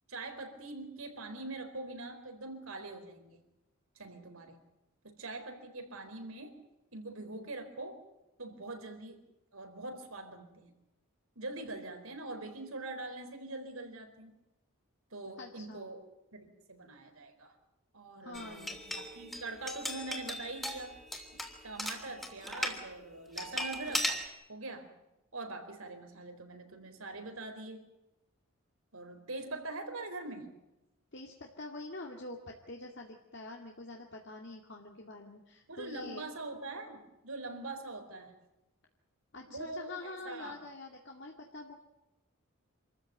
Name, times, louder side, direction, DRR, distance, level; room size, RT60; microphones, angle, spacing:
voice 1, 0.1-3.4 4.0-4.5 5.0-6.5 6.9-8.0 8.4-9.2 9.5-10.7 11.4-14.3 15.1-16.0 16.3-17.5 17.9-20.9 21.6-24.1 24.5-24.9 25.3-27.8 28.9-30.5 35.7-38.3 39.5-40.6, right 2 dB, 80° right, 6 dB, 4.4 m, -43 dB
voice 2, 15.4-15.9 18.2-18.9 21.4-21.5 31.1-36.2 39.3-41.7, left 2 dB, 55° left, 1 dB, 2.2 m, -46 dB
sound 1, 18.3-22.8 23.4-24.3, equal, ahead, 3.0 m, -38 dB
27.0 x 14.5 x 9.2 m, 0.97 s
head